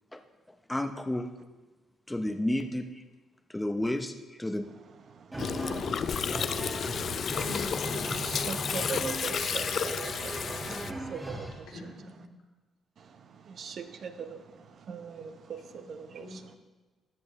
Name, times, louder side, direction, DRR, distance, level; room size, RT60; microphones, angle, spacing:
voice 1, 0.7-1.3 2.1-3.0 3.5-4.7, left 1 dB, 10° left, 0.7 m, -31 dB
voice 2, 5.1-7.5 8.1-11.9 13.0-16.4, right 6 dB, 60° right, 0.8 m, -42 dB
sound 1, 5.3-11.6, right 1 dB, 20° right, 1.6 m, -37 dB
Gurgling, 5.4-10.9, left 7 dB, 55° left, 0.3 m, -32 dB
voice 3, 7.4-8.3 11.7-12.3 15.7-15.8 16.2-16.6, left 2 dB, 80° left, 2.4 m, -44 dB
13.5 x 8.7 x 3.1 m
cardioid pair, 90°, 0 cm